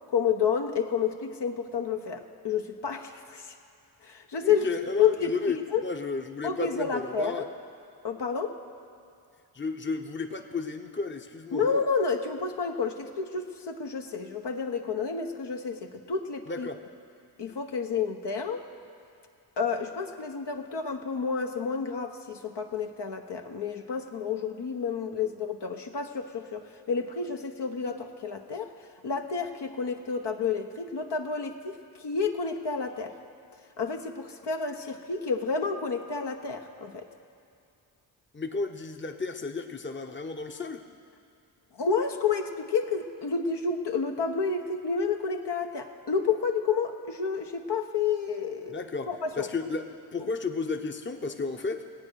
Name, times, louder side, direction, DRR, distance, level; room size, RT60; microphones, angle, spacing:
voice 1, 0.1-3.5 4.0-4.7 5.0-5.3 5.7-5.8 6.4-7.5 8.0-8.6 11.5-16.7 17.4-18.6 19.6-28.7 29.0-31.7 32.0-33.2 33.8-37.1 41.8-48.8 49.1-49.5, left 6 dB, 55° left, 3 dB, 1.2 m, -30 dB
voice 2, 4.4-5.6 5.8-7.5 9.5-11.7 16.5-16.8 38.3-40.9 48.7-51.9, left 4 dB, 20° left, 5 dB, 1.1 m, -33 dB
17.5 x 8.8 x 6.4 m, 2.4 s
supercardioid pair, 40°, 50 cm